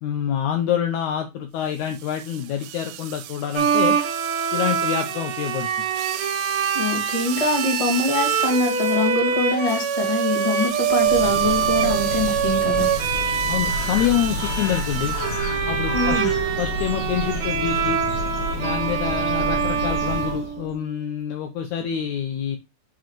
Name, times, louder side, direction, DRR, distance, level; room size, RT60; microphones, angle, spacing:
voice 1, 0.0-4.0 4.5-5.7 13.5-15.2 15.7-16.2 16.6-18.0 18.6-22.6, left 10 dB, 75° left, 4 dB, 1.8 m, -26 dB
sound 1, 1.7-15.6, right 13 dB, 85° right, 2.3 m, -36 dB
Bowed string instrument, 3.6-21.0, right 6 dB, 55° right, 2.3 m, -24 dB
voice 2, 6.7-12.9 15.9-16.3, left 2 dB, 20° left, 0 dB, 1.0 m, -24 dB
Bird, 10.7-20.7, left 1 dB, 45° left, 2.0 m, -30 dB
5.6 x 5.1 x 4.4 m, 0.24 s
omnidirectional pair, 4.1 m